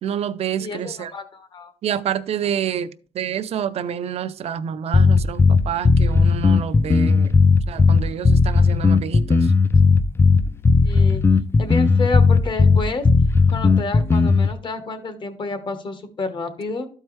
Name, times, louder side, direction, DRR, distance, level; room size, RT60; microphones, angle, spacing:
voice 1, 0.0-1.1 1.8-7.3 7.7-9.5, right 8 dB, 60° right, 0.5 m, -28 dB
voice 2, 0.6-1.7 10.8-11.2 11.6-13.1 13.5-16.9, left 3 dB, 40° left, 1.2 m, -29 dB
sound 1, 4.9-14.5, left 4 dB, 20° left, 0.4 m, -15 dB
13.0 x 4.6 x 3.2 m
cardioid pair, 125°, 12 cm